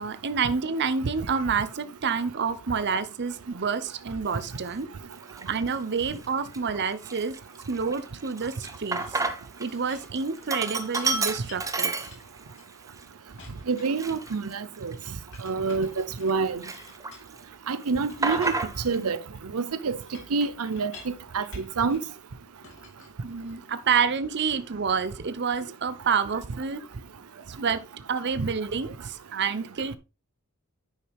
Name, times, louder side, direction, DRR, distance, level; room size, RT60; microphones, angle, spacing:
voice 1, 0.0-4.9 5.5-7.4 7.7-9.2 9.6-12.1 23.2-26.8 27.5-27.8 28.1-30.0, right 5 dB, 55° right, 0.7 m, -28 dB
Sink (filling or washing), 4.4-4.6 5.2-5.8 6.2-6.3 6.5-9.7 10.0-12.5 13.0-13.1 13.8-16.3 16.6-17.4 17.7-19.0, right 3 dB, 15° right, 0.8 m, -31 dB
Chink clink, 8.6-11.2 11.5-13.0 13.4-14.6 15.3-17.6 18.1-22.1 22.6-23.8, left 3 dB, 60° left, 2.7 m, -51 dB
voice 2, 13.7-14.9 15.4-16.6 17.7-18.5 18.8-19.2 19.5-20.0 20.3-22.0 28.4-28.5, right 4 dB, 90° right, 0.6 m, -27 dB
10.0 x 5.6 x 3.4 m
head